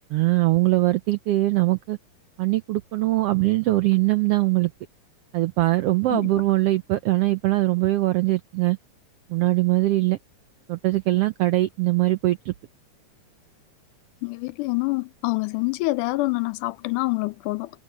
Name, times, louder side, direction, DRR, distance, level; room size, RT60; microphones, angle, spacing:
voice 1, 0.1-2.0 2.4-4.7 5.3-8.8 9.3-10.2 10.7-12.5, right 18 dB, 90° right, 1.3 m, -21 dB
voice 2, 14.2-17.7, left 22 dB, 90° left, 2.2 m, -26 dB
omnidirectional pair, 3.5 m